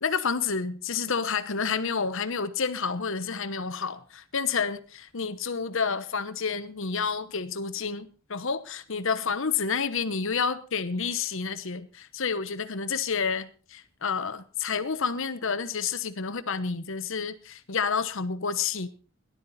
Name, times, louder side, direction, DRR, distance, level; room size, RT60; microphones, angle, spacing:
voice 1, 0.0-18.9, left 5 dB, 65° left, 1.1 m, -29 dB
17.0 x 11.5 x 4.2 m
head